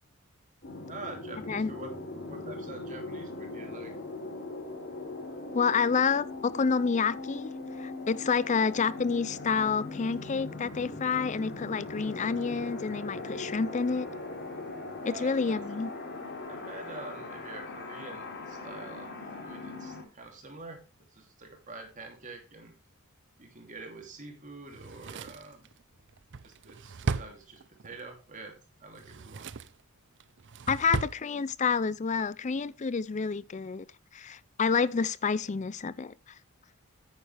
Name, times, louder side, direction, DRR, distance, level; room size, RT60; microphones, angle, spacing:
sound 1, 0.6-20.0, left 2 dB, 50° left, 3.3 m, -40 dB
voice 1, 0.9-1.9 2.3-3.9 15.0-15.6 16.5-19.1 19.4-22.8 23.4-25.7 26.4-28.5 28.8-29.5, right 3 dB, 35° right, 2.9 m, -46 dB
voice 2, 5.5-7.5 7.8-14.1 15.0-15.9 30.7-33.9 34.1-36.1, left 5 dB, 35° left, 0.4 m, -28 dB
Drawer open or close, 24.7-28.0 28.9-29.8 30.2-31.2 31.5-31.6, right 4 dB, 55° right, 0.6 m, -36 dB
9.7 x 9.3 x 3.4 m
head